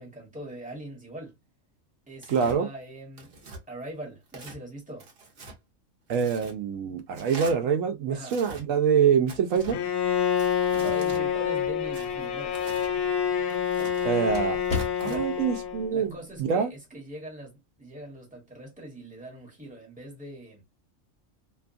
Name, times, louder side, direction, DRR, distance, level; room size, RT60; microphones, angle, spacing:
voice 1, 0.0-1.3 2.1-3.3 3.7-5.1 8.1-8.4 10.8-12.6 15.0-15.3 15.9-20.6, right 1 dB, 5° right, 1.1 m, -41 dB
Tearing, 2.2-2.6 3.2-3.6 4.3-4.6 5.0-5.6 6.1-6.5 7.1-7.5 8.2-8.6 9.3-9.8 10.4-11.2 11.9-12.9 13.5-14.1 14.6-15.2, right 3 dB, 50° right, 1.0 m, -44 dB
voice 2, 2.3-2.7 6.1-9.8 14.0-14.6 15.0-16.1 16.4-16.7, right 7 dB, 80° right, 1.0 m, -25 dB
Bowed string instrument, 9.7-16.0, left 8 dB, 80° left, 1.0 m, -27 dB
sound 1, 10.2-15.4, left 3 dB, 40° left, 1.2 m, -40 dB
2.9 x 2.3 x 2.4 m
omnidirectional pair, 1.4 m